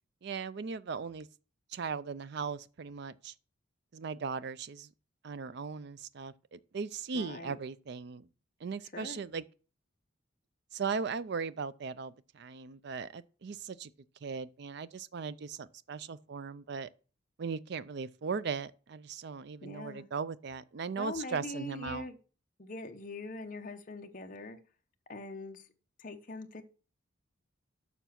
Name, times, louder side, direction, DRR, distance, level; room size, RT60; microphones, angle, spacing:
voice 1, 0.2-1.3 1.7-3.3 3.9-4.9 5.2-8.3 8.6-9.4 10.7-13.9 14.2-16.9 17.4-22.1, right 5 dB, 55° right, 0.4 m, -38 dB
voice 2, 7.1-7.6 8.9-9.2 19.6-20.1 20.9-22.2 22.6-24.6 25.1-25.6 26.0-26.6, left 2 dB, 40° left, 0.8 m, -42 dB
6.9 x 5.9 x 5.8 m
head